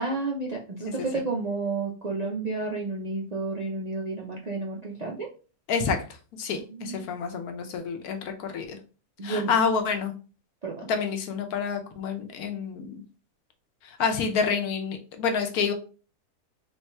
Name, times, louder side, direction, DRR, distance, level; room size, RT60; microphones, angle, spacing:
voice 1, 0.0-5.3 6.7-7.0 9.2-9.5 10.6-10.9, right 3 dB, 65° right, -2 dB, 0.4 m, -31 dB
voice 2, 0.9-1.2 5.7-6.1 6.4-8.8 9.2-10.1 10.9-13.0 13.8-15.7, left 5 dB, 75° left, 5 dB, 1.2 m, -28 dB
3.4 x 2.3 x 4.1 m, 0.36 s
omnidirectional pair, 1.6 m